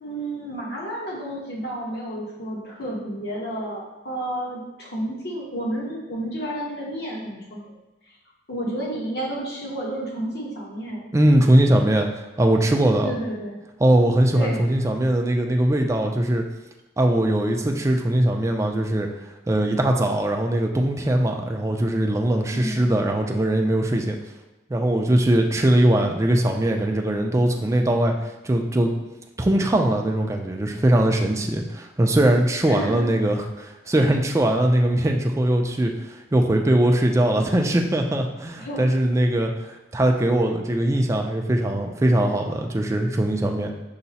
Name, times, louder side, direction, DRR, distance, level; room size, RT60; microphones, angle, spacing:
voice 1, 0.0-7.7 8.5-11.0 13.0-13.6 14.3-14.6 22.5-23.0 32.6-33.1 38.6-38.8, right 1 dB, 65° left, -3 dB, 1.1 m, -31 dB
voice 2, 11.1-13.1 13.8-16.4 17.0-19.1 19.5-24.2 24.7-28.1 28.4-28.9 29.4-35.9 36.3-43.7, right 1 dB, 15° right, 3 dB, 0.4 m, -21 dB
5.6 x 2.0 x 4.0 m, 1.0 s
head